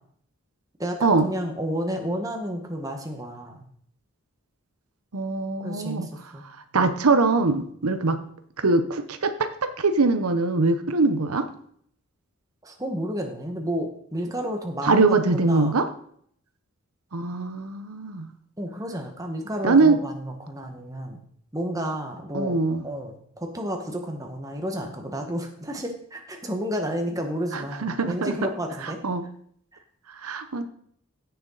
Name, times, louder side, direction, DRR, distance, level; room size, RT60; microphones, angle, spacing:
voice 1, 0.8-3.6 5.6-6.4 12.6-15.8 18.6-21.2 21.5-22.6 22.8-29.0, equal, 15° right, 3 dB, 1.4 m, -31 dB
voice 2, 5.1-6.1 6.7-8.2 8.6-11.5 14.8-15.9 17.1-18.3 19.6-20.0 22.3-22.9 27.5-28.3 29.0-29.2 30.2-30.7, right 3 dB, 85° right, 9 dB, 0.9 m, -22 dB
15.5 x 6.9 x 4.0 m, 0.64 s
head